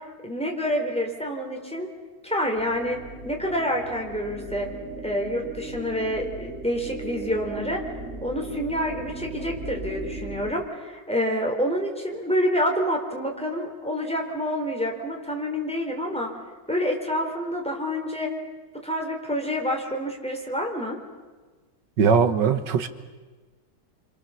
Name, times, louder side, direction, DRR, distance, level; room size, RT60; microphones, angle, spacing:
voice 1, 0.2-1.9 2.2-4.7 5.0-7.8 8.2-16.3 16.7-18.3 18.8-21.0, equal, 5° left, 4.0 m, -27 dB
sound 1, 2.6-10.5, right 2 dB, 40° right, 1.8 m, -38 dB
voice 2, 22.0-22.9, right 6 dB, 85° right, 2.0 m, -20 dB
27.5 x 26.5 x 7.1 m
omnidirectional pair, 1.9 m